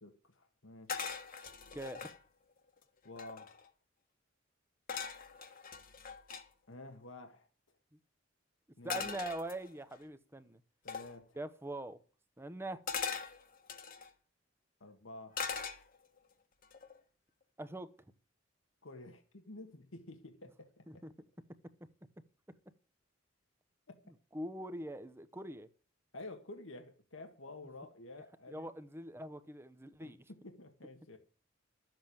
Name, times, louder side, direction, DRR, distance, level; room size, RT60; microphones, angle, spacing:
voice 1, 0.0-1.1 3.0-3.7 6.7-7.5 8.8-9.1 10.8-11.4 14.8-15.4 18.8-21.0 26.1-28.7 30.0-31.2, left 2 dB, 85° left, 1.7 m, -50 dB
sound 1, 0.9-2.2 2.8-2.9 3.1-3.7 4.9-6.4 8.9-10.0 10.9-11.1 12.9-14.1 15.3-16.2 16.6-17.0, left 5 dB, 45° left, 1.5 m, -41 dB
voice 2, 1.7-2.1 8.8-10.6 11.3-12.0 12.4-12.8 17.6-17.9 20.9-21.1 21.8-21.9 24.1-25.7 28.5-30.3, right 1 dB, 10° right, 0.9 m, -43 dB
12.5 x 7.8 x 8.6 m
head